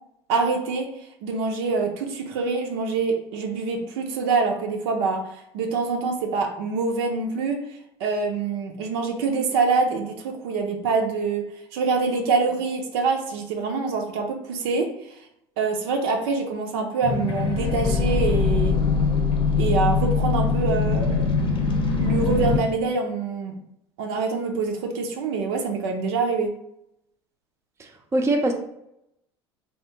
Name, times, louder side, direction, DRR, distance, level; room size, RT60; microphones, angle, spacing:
voice 1, 0.3-0.9 1.2-7.6 8.0-11.4 11.7-15.2 15.6-18.8 19.6-21.2 22.0-23.5 24.0-26.5, right 4 dB, 65° right, 3 dB, 0.6 m, -25 dB
sound 1, 17.0-22.6, left 5 dB, 35° left, 0.7 m, -22 dB
voice 2, 27.8-28.5, right 1 dB, 20° right, 3 dB, 0.6 m, -23 dB
3.5 x 2.4 x 2.8 m, 0.78 s
hypercardioid pair, 75°, 14 cm